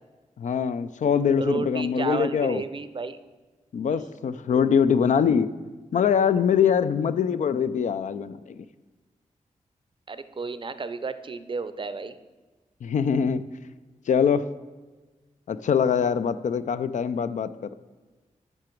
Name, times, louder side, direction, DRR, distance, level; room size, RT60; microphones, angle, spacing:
voice 1, 0.4-2.6 3.7-5.5 5.9-8.6 12.8-13.5 14.1-14.5 15.5-17.7, left 7 dB, 70° left, 12 dB, 0.4 m, -23 dB
voice 2, 1.4-3.2 3.9-4.1 10.1-12.2, right 4 dB, 40° right, 12 dB, 0.5 m, -32 dB
9.8 x 6.0 x 4.5 m, 1.3 s
cardioid pair, 70°, 13 cm